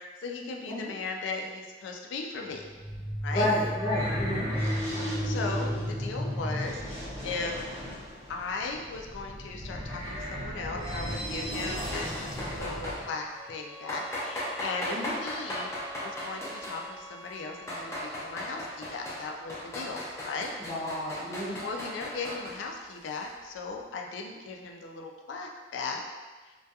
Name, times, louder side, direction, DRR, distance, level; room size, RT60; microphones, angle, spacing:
voice 1, 0.0-2.6 3.2-3.5 5.2-7.6 8.3-20.5 21.6-26.0 26.4-26.6, left 4 dB, 85° left, 2 dB, 0.3 m, -37 dB
sound 1, 2.5-13.0, equal, 40° right, 0.7 m, -34 dB
voice 2, 3.3-4.4 14.9-15.1 20.6-21.6, left 1 dB, 35° left, -9 dB, 0.8 m, -30 dB
sound 2, 11.8-13.0 13.9-16.9 17.4-19.2 19.5-22.6, left 1 dB, 15° left, 0.4 m, -37 dB
sound 3, 13.3-18.1, right 2 dB, 80° right, 0.7 m, -46 dB
2.2 x 2.2 x 2.7 m, 1.3 s
head